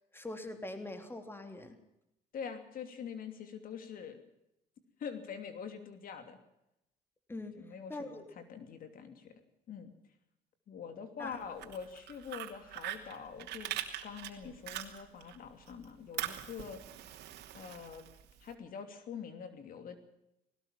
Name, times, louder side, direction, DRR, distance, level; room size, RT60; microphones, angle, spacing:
voice 1, 0.1-1.8 7.3-7.5 7.9-8.2 11.2-11.4, left 2 dB, 15° left, 7 dB, 3.4 m, -42 dB
voice 2, 2.3-4.2 5.0-6.4 7.5-9.3 9.7-9.9 10.7-13.7 14.0-16.8 17.5-18.1 18.4-20.0, left 7 dB, 55° left, 8 dB, 2.9 m, -45 dB
Fire, 11.4-15.4 15.7-18.5, right 13 dB, 80° right, 2.9 m, -42 dB
20.0 x 18.0 x 7.5 m, 0.86 s
cardioid pair, 110°, 17 cm